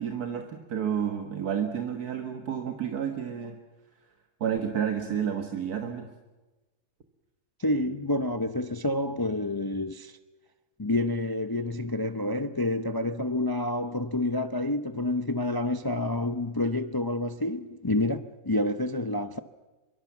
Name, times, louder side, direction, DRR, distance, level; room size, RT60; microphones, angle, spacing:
voice 1, 0.0-3.6 4.4-6.1, right 8 dB, 85° right, 1.9 m, -30 dB
voice 2, 7.6-10.2 10.8-19.4, left 1 dB, 30° left, 0.4 m, -28 dB
24.0 x 24.0 x 7.3 m
omnidirectional pair, 1.6 m